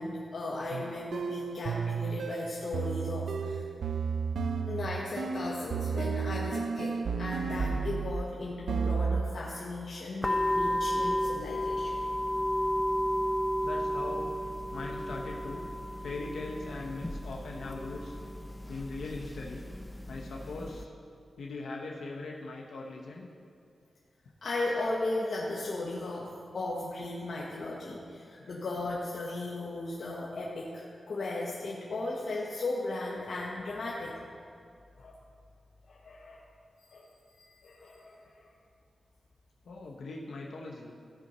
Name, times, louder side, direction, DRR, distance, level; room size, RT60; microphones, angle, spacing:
voice 1, 0.0-3.6 4.7-12.0 24.4-34.2 35.0-35.1 35.9-36.4 36.9-37.1 37.4-38.5, left 2 dB, 70° left, -5 dB, 1.2 m, -36 dB
sound 1, 0.7-8.3 8.7-9.4, right 5 dB, 85° right, 0.4 m, -32 dB
sound 2, 10.2-20.8, equal, 15° left, 0.6 m, -33 dB
voice 2, 13.6-14.3 14.7-15.7 16.0-18.2 18.7-19.7 20.1-20.9 21.4-23.3 28.4-28.5 39.6-41.0, left 3 dB, 90° left, -2 dB, 1.0 m, -40 dB
15.5 x 5.3 x 4.3 m, 2.4 s
wide cardioid pair, 90°, 0 cm